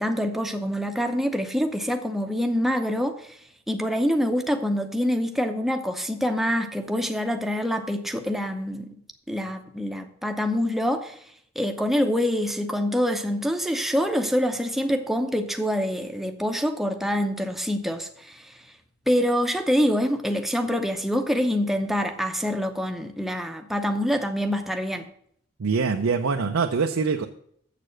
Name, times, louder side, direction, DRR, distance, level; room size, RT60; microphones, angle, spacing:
voice 1, 0.0-3.4 3.7-9.0 9.3-11.2 11.6-18.5 19.1-25.1, equal, ahead, 5 dB, 0.7 m, -25 dB
voice 2, 25.6-27.3, right 5 dB, 90° right, 5 dB, 0.6 m, -24 dB
7.7 x 6.8 x 6.4 m, 0.67 s
head